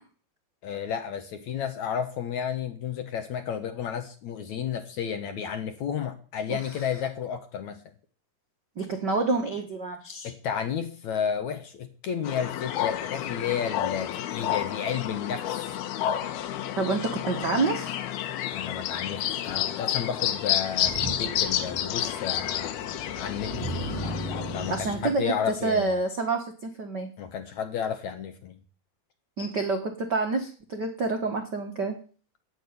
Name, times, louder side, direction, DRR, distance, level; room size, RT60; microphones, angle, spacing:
voice 1, 0.6-7.8 10.2-15.8 18.5-22.8 23.1-23.8 24.5-26.0 27.2-28.5, left 8 dB, 65° left, 8 dB, 2.0 m, -32 dB
voice 2, 8.8-10.3 16.8-18.0 24.7-25.3 25.6-27.1 29.4-32.0, right 3 dB, 65° right, 4 dB, 1.0 m, -28 dB
sound 1, 12.3-24.8, left 11 dB, 80° left, 3.0 m, -30 dB
Motor vehicle (road), 19.4-19.6 20.7-25.0, right 1 dB, 15° right, 3.7 m, -36 dB
15.5 x 6.6 x 9.7 m, 0.41 s
omnidirectional pair, 4.4 m